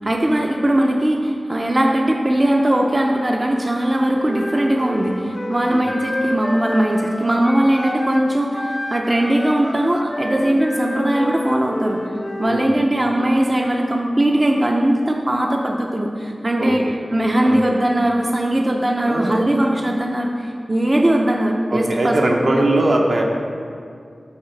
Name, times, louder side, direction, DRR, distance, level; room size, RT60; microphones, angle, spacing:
voice 1, 0.0-16.8 17.1-22.5, right 1 dB, 30° right, 0 dB, 0.6 m, -19 dB
Wind instrument woodwind instrument, 4.2-8.3 8.5-12.7, left 1 dB, 25° left, 0.5 m, -29 dB
voice 2, 12.4-12.8 16.6-17.0 17.4-17.6 19.0-19.4 21.7-23.2, right 1 dB, 65° right, 0 dB, 0.9 m, -21 dB
7.1 x 4.4 x 6.3 m, 2.3 s
wide cardioid pair, 95°, 0 cm